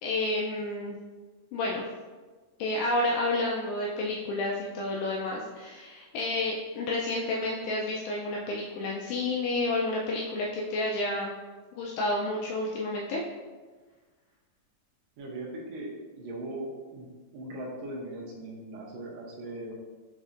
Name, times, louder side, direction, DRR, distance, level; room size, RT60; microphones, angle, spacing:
voice 1, 0.0-1.0 1.5-1.9 2.6-11.4 11.8-13.2, left 2 dB, 85° left, -2 dB, 1.7 m, -30 dB
voice 2, 15.2-15.9 16.2-17.1 17.3-19.7, right 1 dB, 90° right, -3 dB, 1.4 m, -39 dB
5.2 x 4.1 x 2.4 m, 1.4 s
omnidirectional pair, 4.0 m